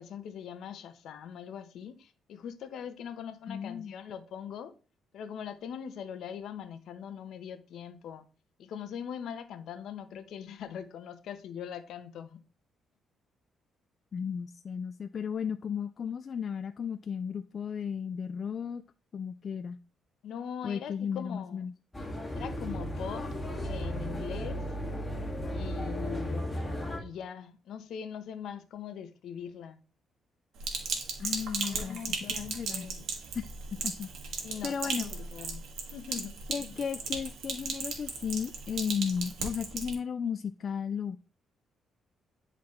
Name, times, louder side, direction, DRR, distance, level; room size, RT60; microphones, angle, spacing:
voice 1, 0.0-4.7 5.1-8.3 8.6-12.4 20.2-21.6 22.4-23.3 23.6-24.6 25.5-26.5 27.0-29.8 31.7-33.1 34.4-35.6 35.9-36.3, left 8 dB, 75° left, 0.9 m, -41 dB
voice 2, 3.5-3.9 14.1-18.8 19.1-19.8 20.6-21.7 31.2-32.0 32.3-32.9 33.3-33.5 33.8-35.1 36.5-41.2, left 7 dB, 50° left, 0.3 m, -34 dB
sound 1, 21.9-27.0, equal, 10° left, 2.1 m, -35 dB
Sink (filling or washing), 30.6-39.9, right 5 dB, 75° right, 1.7 m, -36 dB
10.5 x 4.0 x 3.2 m
cardioid pair, 90°, 0 cm